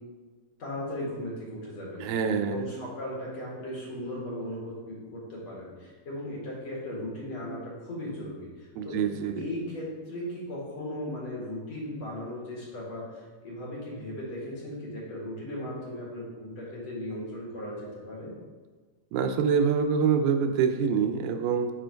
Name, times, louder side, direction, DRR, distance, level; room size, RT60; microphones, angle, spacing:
voice 1, 0.6-2.1 2.4-9.0 9.4-18.3, left 1 dB, 55° left, -5 dB, 2.7 m, -37 dB
voice 2, 2.0-2.7 8.8-9.5 19.1-21.7, right 6 dB, 85° right, 6 dB, 2.4 m, -25 dB
7.5 x 4.5 x 4.5 m, 1.4 s
omnidirectional pair, 4.0 m